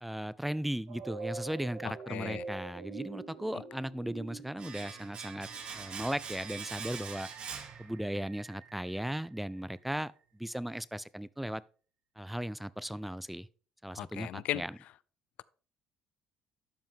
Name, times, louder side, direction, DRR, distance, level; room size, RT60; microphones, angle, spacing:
voice 1, 0.0-5.5 5.7-7.3 7.8-10.1 10.4-11.6 12.2-13.5 13.8-14.7, right 1 dB, 5° right, 0.4 m, -37 dB
sound 1, 0.9-9.8, right 4 dB, 75° right, 1.4 m, -47 dB
voice 2, 1.8-2.4 3.5-3.6 13.9-14.6, left 14 dB, 65° left, 0.3 m, -37 dB
Domestic sounds home sounds, 4.6-8.4 8.7-8.8, right 6 dB, 50° right, 1.5 m, -43 dB
12.0 x 5.4 x 3.6 m
supercardioid pair, 75°, 2 cm